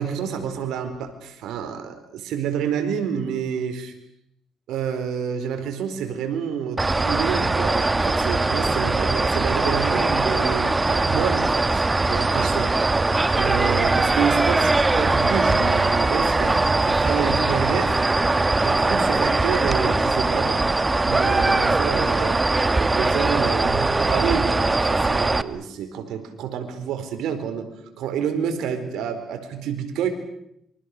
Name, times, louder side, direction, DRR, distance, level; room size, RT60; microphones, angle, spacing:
voice 1, 0.0-3.9 4.7-13.0 13.3-18.0 18.6-20.6 21.0-22.4 22.7-27.7 28.0-30.1, right 7 dB, 85° right, 7 dB, 4.4 m, -28 dB
sound 1, 6.8-25.4, right 2 dB, 20° right, 1.2 m, -21 dB
28.0 x 25.0 x 6.7 m, 0.77 s
cardioid pair, 90°, 0 cm